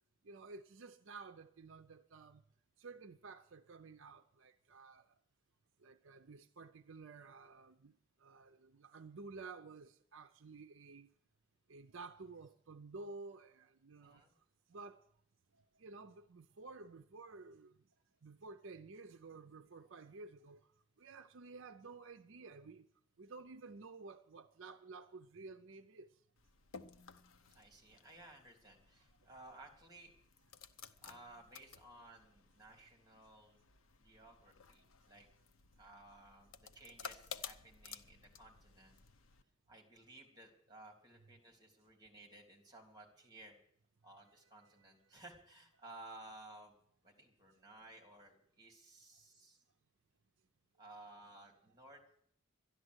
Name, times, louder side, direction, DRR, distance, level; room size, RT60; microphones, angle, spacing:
voice 1, 0.2-2.4 2.8-5.1 5.8-7.9 8.2-11.1 11.7-14.2 14.7-15.0 15.8-17.7 18.2-20.6 21.0-22.9 23.2-26.1 44.4-44.9, right 3 dB, 60° right, 0.6 m, -53 dB
voice 2, 14.0-14.3 27.5-30.1 31.0-33.6 34.0-35.3 35.8-39.0 39.7-43.6 44.0-46.8 47.0-49.6 50.8-52.0, right 2 dB, 20° right, 3.1 m, -57 dB
sound 1, 26.4-39.4, left 6 dB, 70° left, 0.7 m, -55 dB
12.5 x 11.0 x 8.0 m
head